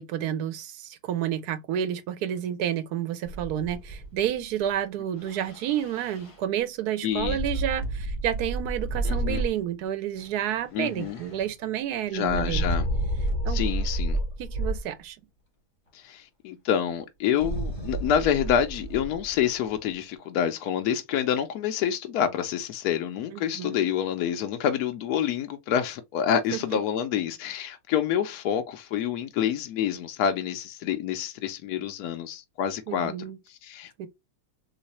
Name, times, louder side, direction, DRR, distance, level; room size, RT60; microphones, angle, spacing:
voice 1, 0.0-12.6 13.4-13.6 14.4-15.2 23.3-23.9 26.5-26.8 32.9-33.4 34.0-34.1, right 10 dB, 85° right, 1.2 m, -30 dB
sound 1, 3.2-4.3 5.2-6.3 7.1-9.7 10.2-11.5 12.2-14.8 17.4-19.8, right 1 dB, 25° left, 1.1 m, -30 dB
voice 2, 7.0-7.4 9.0-9.4 10.7-11.2 12.1-12.9 13.5-14.2 15.9-33.1 33.5-34.1, left 9 dB, 80° left, 1.1 m, -27 dB
3.2 x 3.1 x 2.9 m
omnidirectional pair, 1.6 m